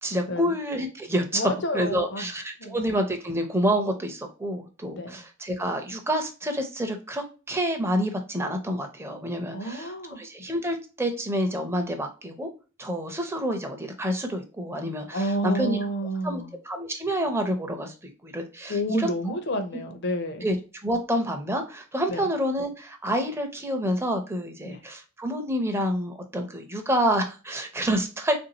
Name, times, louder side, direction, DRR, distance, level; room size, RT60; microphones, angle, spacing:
voice 1, 0.0-12.5 12.8-15.8 16.2-19.1 20.4-20.6 20.8-28.4, equal, 10° right, 0.6 m, -28 dB
voice 2, 1.3-2.3 2.6-2.8 4.9-5.1 9.5-10.2 15.1-16.5 18.7-20.5 22.1-22.2 24.6-24.8, equal, 55° left, 0.7 m, -29 dB
3.5 x 2.6 x 2.8 m
head